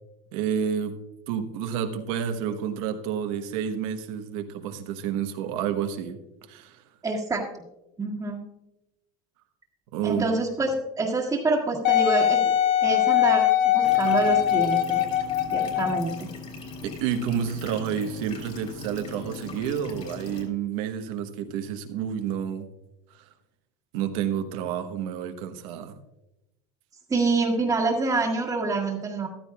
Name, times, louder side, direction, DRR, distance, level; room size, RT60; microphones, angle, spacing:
voice 1, 0.3-1.0 1.3-6.2 6.5-6.8 9.9-10.3 16.8-22.7 23.2-23.3 23.9-26.0, right 8 dB, 75° right, 7 dB, 1.2 m, -29 dB
voice 2, 7.0-7.4 8.0-8.4 10.0-12.5 12.8-15.0 15.5-16.3 27.1-29.3, right 3 dB, 20° right, -4 dB, 1.6 m, -26 dB
Wind instrument woodwind instrument, 11.8-16.2 16.8-16.9, left 11 dB, 65° left, 1.0 m, -22 dB
sound 1, 13.8-20.4, left 3 dB, 40° left, 3.3 m, -40 dB
14.5 x 12.0 x 2.4 m, 0.93 s
supercardioid pair, 120°, 18 cm